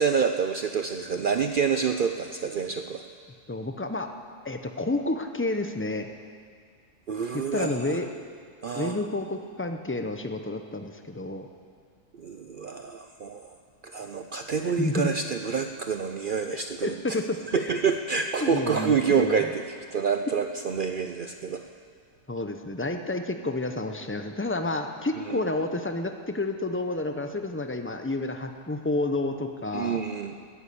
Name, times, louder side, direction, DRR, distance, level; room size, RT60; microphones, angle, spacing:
voice 1, 0.0-3.0 7.1-8.0 8.6-9.0 12.2-13.6 13.8-17.2 17.5-19.6 19.9-21.6 25.3-25.4 29.7-30.3, right 6 dB, 65° right, 6 dB, 0.5 m, -27 dB
voice 2, 3.5-4.1 4.4-6.1 7.3-8.1 8.8-11.5 14.6-15.1 16.5-17.8 18.4-19.5 22.3-30.0, left 2 dB, 20° left, 6 dB, 0.4 m, -30 dB
14.0 x 9.6 x 8.5 m, 2.1 s
omnidirectional pair, 1.5 m